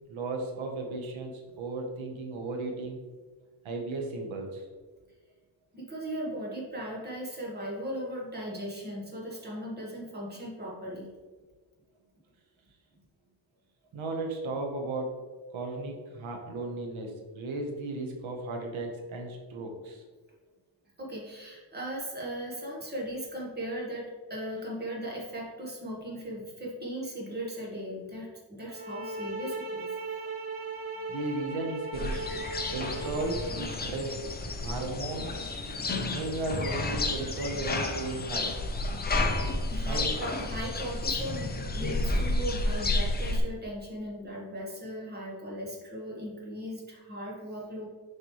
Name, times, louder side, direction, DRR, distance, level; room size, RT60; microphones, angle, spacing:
voice 1, 0.1-3.0 3.6-4.6 13.9-15.2 15.5-20.0 31.1-32.4 32.7-34.2 34.6-35.3 36.1-38.5 39.9-40.1, right 2 dB, 85° right, 2 dB, 1.1 m, -35 dB
voice 2, 5.7-11.1 21.0-29.9 39.7-47.9, equal, 20° right, -3 dB, 1.4 m, -38 dB
sound 1, 28.7-33.7, right 2 dB, 50° right, 0.9 m, -37 dB
sound 2, 31.9-43.4, left 2 dB, 20° left, 0.4 m, -31 dB
6.6 x 5.3 x 3.1 m, 1.4 s
wide cardioid pair, 175°, 47 cm